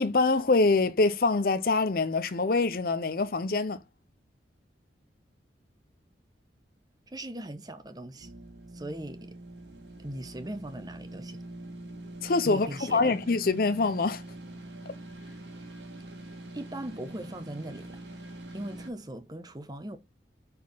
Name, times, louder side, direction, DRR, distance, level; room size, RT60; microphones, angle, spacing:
voice 1, 0.0-3.8 12.2-14.2, left 3 dB, 50° left, 0.5 m, -25 dB
voice 2, 7.1-8.3 8.7-9.4 10.0-11.4 12.4-13.2 16.5-18.0 18.5-20.0, right 1 dB, 20° right, 0.9 m, -39 dB
sound 1, 8.2-18.9, right 1 dB, 80° right, 2.2 m, -44 dB
6.6 x 4.2 x 5.5 m
head